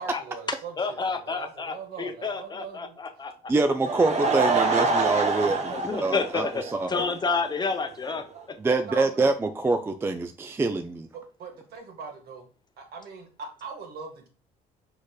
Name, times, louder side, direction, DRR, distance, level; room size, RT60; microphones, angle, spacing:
voice 1, 0.0-3.0 5.5-5.6 8.7-9.2 11.1-12.5 12.8-14.3, right 5 dB, 65° right, 3 dB, 1.5 m, -41 dB
voice 2, 0.8-3.3 5.5-6.6 6.9-8.2, left 4 dB, 25° left, 6 dB, 0.6 m, -29 dB
voice 3, 3.5-7.0 8.6-11.1, right 3 dB, 15° right, 8 dB, 0.3 m, -25 dB
Laughter / Crowd, 3.6-7.1 7.4-7.5 8.1-8.2 8.3-8.4, right 4 dB, 40° right, 0.8 m, -26 dB
4.9 x 4.3 x 2.2 m, 0.39 s
cardioid pair, 110°, 17 cm